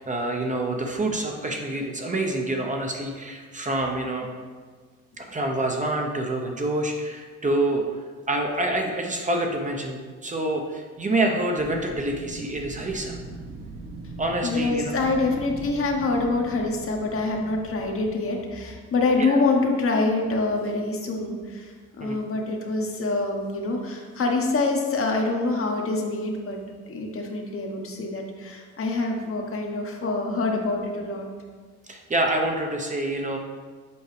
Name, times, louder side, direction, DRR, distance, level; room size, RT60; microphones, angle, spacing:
voice 1, 0.0-4.3 5.2-7.8 8.3-13.2 14.2-14.9 19.2-19.4 22.0-22.2 31.9-33.4, right 1 dB, 25° right, 2 dB, 0.7 m, -27 dB
Wind, 11.6-18.5, right 3 dB, 50° right, 1.1 m, -40 dB
voice 2, 14.4-21.7 22.0-26.6 26.9-31.3, left 3 dB, 45° left, 1 dB, 1.1 m, -25 dB
7.0 x 4.6 x 3.3 m, 1.5 s
cardioid pair, 90°, 30 cm